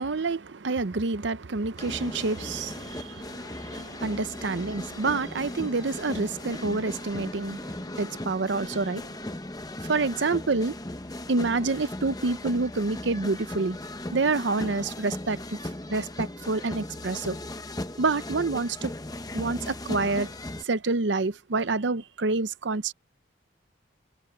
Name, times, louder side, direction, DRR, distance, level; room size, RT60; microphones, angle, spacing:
voice 1, 0.0-9.1 9.8-10.8 11.3-13.8 14.1-15.6 15.9-17.4 18.0-18.9 19.3-20.3 20.6-22.9, right 3 dB, 70° right, 0.7 m, -28 dB
sound 1, 1.8-20.6, left 1 dB, 20° left, 0.8 m, -37 dB
head